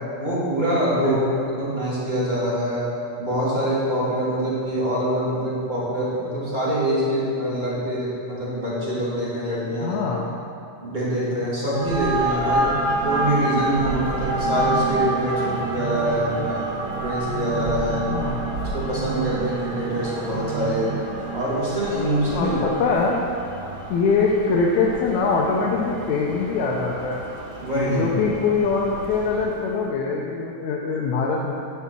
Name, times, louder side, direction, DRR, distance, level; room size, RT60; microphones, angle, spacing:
voice 1, 0.1-1.2 1.6-2.9 3.2-10.0 10.8-12.7 13.0-16.7 17.0-18.0 18.7-20.9 21.3-22.6 27.6-28.0, equal, 15° right, -9 dB, 2.0 m, -25 dB
voice 2, 9.8-10.3 18.0-18.4 21.9-22.0 22.3-23.2 23.9-27.2 27.9-31.5, left 4 dB, 75° left, -2 dB, 2.0 m, -23 dB
sound 1, 11.7-29.6, right 1 dB, 65° right, 1.3 m, -29 dB
sound 2, 12.6-21.4, right 10 dB, 80° right, 2.1 m, -32 dB
9.7 x 5.8 x 6.1 m, 2.6 s
omnidirectional pair, 3.7 m